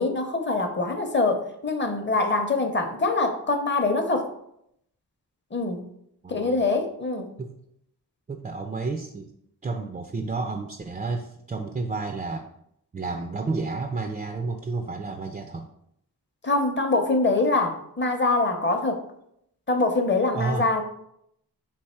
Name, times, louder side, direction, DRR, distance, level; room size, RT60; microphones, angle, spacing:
voice 1, 0.0-4.3 5.5-5.9 6.3-7.3 16.4-19.0 19.7-20.8, left 3 dB, 30° left, 6 dB, 0.7 m, -24 dB
voice 2, 6.2-6.6 7.4-7.6 8.3-9.3 9.6-12.5 12.9-15.7 20.3-20.7, right 3 dB, 20° right, 5 dB, 0.3 m, -31 dB
3.4 x 2.8 x 4.3 m, 0.75 s
cardioid pair, 50°, 39 cm